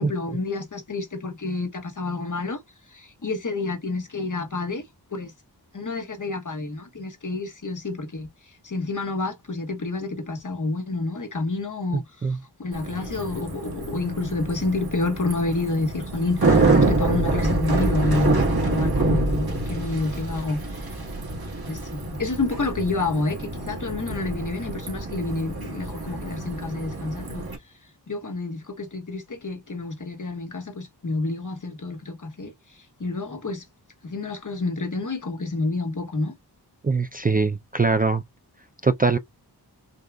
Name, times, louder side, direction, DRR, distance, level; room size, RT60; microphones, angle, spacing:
voice 1, 0.0-2.6 2.9-5.3 5.7-21.0 21.7-27.5 28.1-33.6 34.0-36.3, left 3 dB, 50° left, 1.3 m, -29 dB
Bicycle, 12.7-27.6, right 2 dB, 65° right, 1.6 m, -26 dB
voice 2, 36.8-38.2 38.8-39.2, right 4 dB, 25° right, 0.4 m, -22 dB
6.5 x 2.4 x 2.2 m
wide cardioid pair, 55°, 40 cm